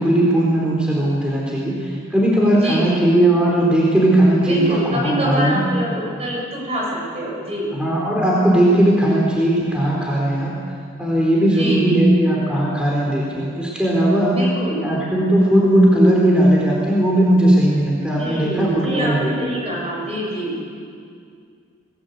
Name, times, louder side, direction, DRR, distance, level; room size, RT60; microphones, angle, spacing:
voice 1, 0.0-5.6 7.7-10.5 11.0-14.4 14.8-19.5, right 1 dB, 5° right, -4 dB, 4.0 m, -17 dB
voice 2, 2.5-3.1 4.4-7.7 11.5-12.1 14.3-14.8 18.1-20.6, equal, 30° right, -3 dB, 7.7 m, -26 dB
25.0 x 18.5 x 8.3 m, 2.2 s
head